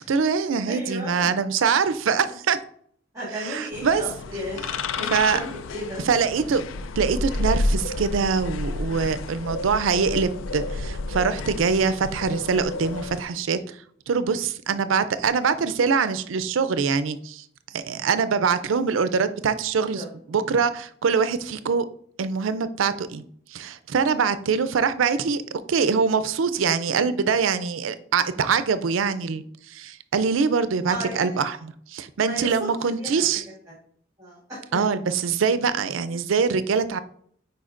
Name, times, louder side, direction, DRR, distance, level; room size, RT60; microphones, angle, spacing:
voice 1, 0.1-2.6 3.4-4.0 5.1-5.4 6.0-6.6 7.0-13.6 14.1-17.4 17.7-21.9 22.2-23.2 23.5-29.4 29.7-33.4 34.7-37.0, right 5 dB, 85° right, 12 dB, 0.4 m, -23 dB
voice 2, 0.7-1.3 2.2-2.3 3.1-6.0 19.9-20.1 20.5-20.6 26.9-27.0 30.8-31.4 32.2-33.2 33.7-33.8 34.2-34.6, equal, 15° right, -8 dB, 1.9 m, -35 dB
sound 1, 3.7-13.2, left 2 dB, 90° left, 0.4 m, -30 dB
9.3 x 4.5 x 2.5 m, 0.63 s
head